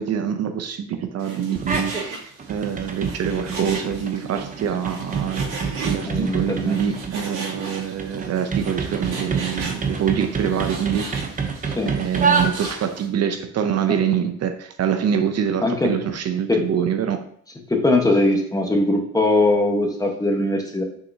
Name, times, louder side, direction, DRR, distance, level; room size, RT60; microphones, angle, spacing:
voice 1, 0.0-11.5 11.9-17.2, right 8 dB, 55° right, 7 dB, 0.7 m, -25 dB
Frying (food), 1.2-13.1, right 3 dB, 80° right, 2.7 m, -37 dB
sound 1, 1.6-2.1 2.4-13.0, right 5 dB, 25° right, 0.9 m, -28 dB
voice 2, 6.1-6.8 11.8-11.9 13.9-14.0 15.6-15.9 16.5-16.6 17.7-20.8, left 2 dB, 10° left, 2 dB, 1.2 m, -20 dB
6.5 x 5.7 x 2.8 m, 0.63 s
cardioid pair, 115°, 31 cm